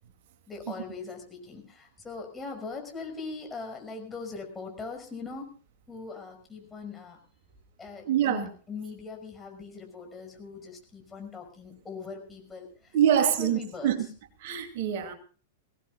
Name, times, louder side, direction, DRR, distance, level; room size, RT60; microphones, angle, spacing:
voice 1, 0.5-5.5 5.9-7.2 7.8-13.9, left 4 dB, 15° left, 2 dB, 6.0 m, -41 dB
voice 2, 8.0-8.5 12.9-14.1 14.4-15.1, right 10 dB, 50° right, 7 dB, 2.6 m, -25 dB
23.5 x 18.0 x 2.4 m, 0.38 s
figure-of-eight pair, 95°, 0 cm